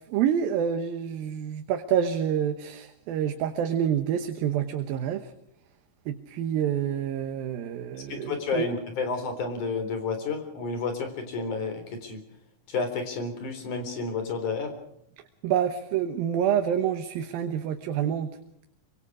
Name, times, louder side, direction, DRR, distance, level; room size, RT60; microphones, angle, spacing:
voice 1, 0.1-5.3 6.1-8.7 15.4-18.3, right 9 dB, 80° right, 7 dB, 3.0 m, -27 dB
voice 2, 8.1-12.2 12.7-14.7, left 4 dB, 55° left, 6 dB, 5.1 m, -31 dB
26.0 x 24.5 x 4.9 m, 0.73 s
omnidirectional pair, 4.2 m